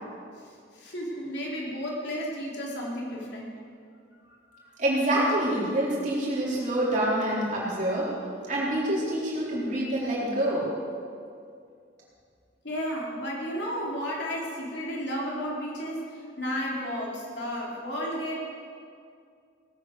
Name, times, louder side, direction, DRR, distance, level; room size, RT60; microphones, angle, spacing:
voice 1, 0.4-3.5 4.2-4.8 12.6-18.4, equal, 65° left, -3 dB, 3.2 m, -33 dB
voice 2, 4.8-8.1 8.5-10.7, right 1 dB, 40° right, -6 dB, 4.0 m, -26 dB
18.0 x 8.8 x 6.7 m, 2.3 s
head